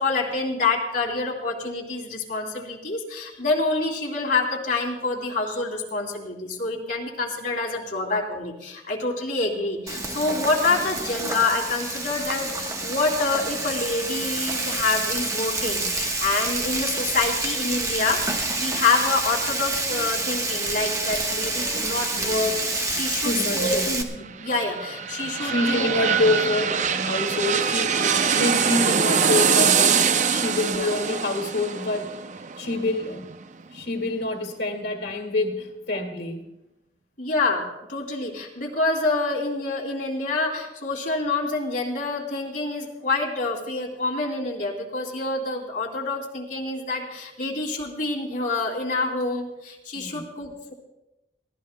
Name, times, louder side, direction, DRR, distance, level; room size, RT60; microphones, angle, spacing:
voice 1, 0.0-25.9 30.7-30.9 37.2-50.7, left 3 dB, 50° left, -1 dB, 3.0 m, -27 dB
Frying (food), 9.9-24.0, right 2 dB, 20° right, 1.2 m, -28 dB
voice 2, 23.1-24.0 25.4-32.1 32.6-33.3 33.7-36.5 49.9-50.3, left 2 dB, 75° left, 2 dB, 2.1 m, -27 dB
sound 1, 24.2-33.8 34.2-34.3, right 6 dB, 45° right, 0.5 m, -23 dB
25.5 x 16.5 x 2.2 m, 0.93 s
head